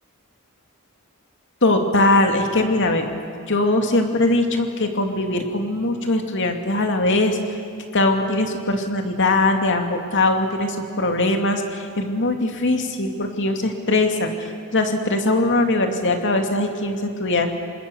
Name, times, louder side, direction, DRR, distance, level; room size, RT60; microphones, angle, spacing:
voice 1, 1.6-3.1 3.5-7.4 7.9-17.5, left 2 dB, 55° left, 4 dB, 2.6 m, -21 dB
27.5 x 26.0 x 7.1 m, 2.5 s
head